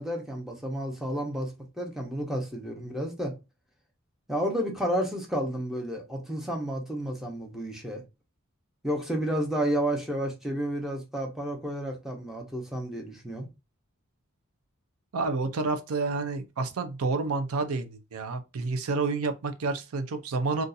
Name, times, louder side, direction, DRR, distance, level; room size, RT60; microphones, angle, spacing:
voice 1, 0.0-3.4 4.3-8.0 8.8-13.5, equal, ahead, 0.8 m, -31 dB
voice 2, 15.1-20.6, right 3 dB, 85° right, 0.5 m, -29 dB
2.6 x 2.4 x 3.9 m
head